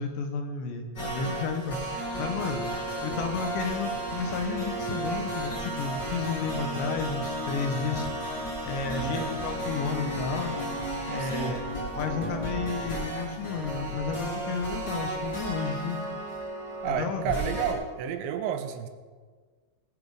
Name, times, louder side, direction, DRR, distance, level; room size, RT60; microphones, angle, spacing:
voice 1, 0.0-2.6 3.0-8.1 8.6-10.6 11.1-11.6 11.9-16.0 16.9-17.2, left 5 dB, 75° left, 5 dB, 3.5 m, -32 dB
sound 1, 0.9-17.7, right 1 dB, 25° left, 4.0 m, -33 dB
voice 2, 9.0-9.3 11.2-11.6 16.8-18.9, right 8 dB, 80° right, 8 dB, 3.1 m, -31 dB
20.0 x 8.9 x 5.1 m, 1.5 s
omnidirectional pair, 5.4 m